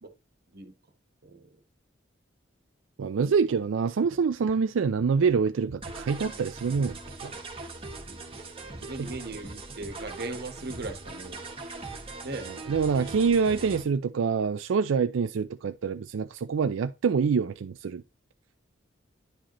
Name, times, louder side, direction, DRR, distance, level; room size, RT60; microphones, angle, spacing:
voice 1, 1.2-1.6 8.0-8.2 8.7-11.4 12.2-12.5, right 2 dB, 55° right, 1.2 m, -38 dB
voice 2, 3.0-7.3 9.0-9.1 12.5-18.0, right 5 dB, 90° right, 0.4 m, -26 dB
sound 1, 5.8-13.8, right 3 dB, 30° right, 1.4 m, -41 dB
9.9 x 4.9 x 3.0 m
head